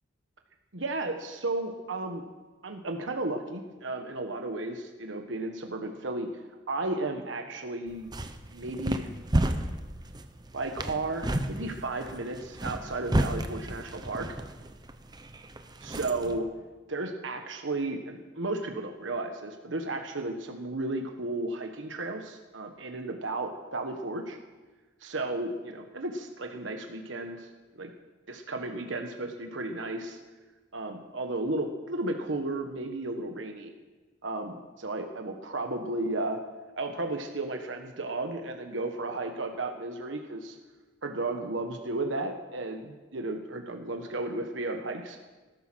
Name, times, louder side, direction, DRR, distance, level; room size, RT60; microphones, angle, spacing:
voice 1, 0.7-2.2 2.6-6.4 6.7-8.1 8.5-9.1 10.5-14.4 15.8-16.5 16.9-24.4 25.0-27.5 27.7-27.9 28.3-30.2 30.7-33.7 34.2-36.4 36.8-40.6 41.0-45.2, right 2 dB, 85° right, 4 dB, 1.3 m, -34 dB
sound 1, 7.9-16.4, right 1 dB, 20° right, 0.9 m, -32 dB
19.5 x 12.0 x 6.2 m, 1.3 s
head